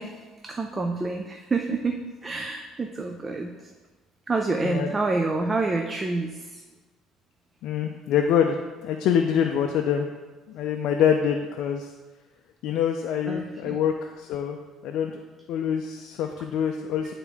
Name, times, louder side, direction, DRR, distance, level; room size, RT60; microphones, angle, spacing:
voice 1, 0.0-3.7 4.3-6.6 13.3-13.8 17.0-17.1, right 3 dB, 15° right, 3 dB, 0.4 m, -28 dB
voice 2, 7.6-8.6 8.8-10.1 10.5-11.9 12.6-14.6 14.8-15.2 15.5-17.1, left 8 dB, 65° left, 4 dB, 0.4 m, -25 dB
9.9 x 3.6 x 3.5 m, 1.3 s
cardioid pair, 150°, 0 cm